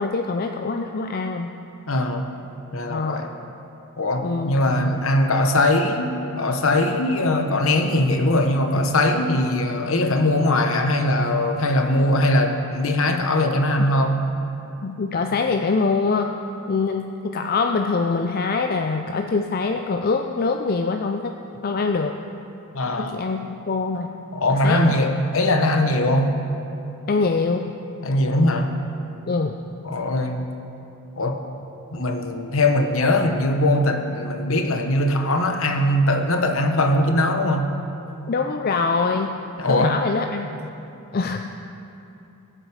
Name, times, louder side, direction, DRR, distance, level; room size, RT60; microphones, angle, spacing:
voice 1, 0.0-1.5 2.9-3.2 4.2-5.0 13.8-13.9 14.8-16.3 16.7-21.3 21.6-22.2 23.0-24.1 24.5-25.0 27.1-27.7 29.3-29.5 38.3-39.3 39.7-40.5 41.1-41.5, left 4 dB, 45° left, 5 dB, 0.4 m, -24 dB
voice 2, 1.9-2.3 2.7-3.3 4.0-14.2 22.7-23.2 24.3-26.4 28.0-28.8 29.8-30.5 31.2-31.4 31.9-37.8 39.6-40.0, left 1 dB, 65° left, 5 dB, 1.1 m, -21 dB
21.5 x 7.7 x 4.9 m, 2.8 s
head